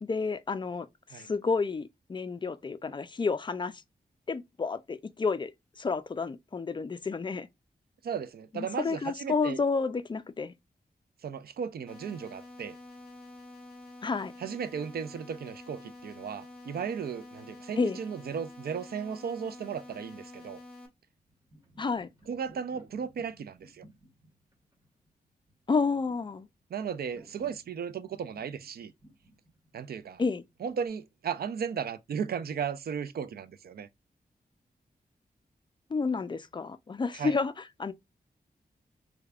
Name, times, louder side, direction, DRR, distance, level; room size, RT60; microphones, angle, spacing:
voice 1, 0.0-3.7 4.3-5.5 5.8-7.5 8.5-10.5 14.0-14.3 17.8-18.0 21.8-22.1 25.7-26.5 30.2-30.4 35.9-37.9, left 4 dB, 30° left, 0.4 m, -30 dB
voice 2, 8.0-9.6 11.2-12.8 14.4-20.6 22.3-23.8 26.7-28.9 29.7-30.2 30.6-33.9 37.1-37.3, right 7 dB, 75° right, 0.4 m, -35 dB
sound 1, 11.9-20.9, left 2 dB, 5° left, 1.5 m, -48 dB
sound 2, 21.2-30.9, right 1 dB, 20° right, 1.7 m, -58 dB
3.6 x 3.4 x 2.4 m
wide cardioid pair, 100°, 16 cm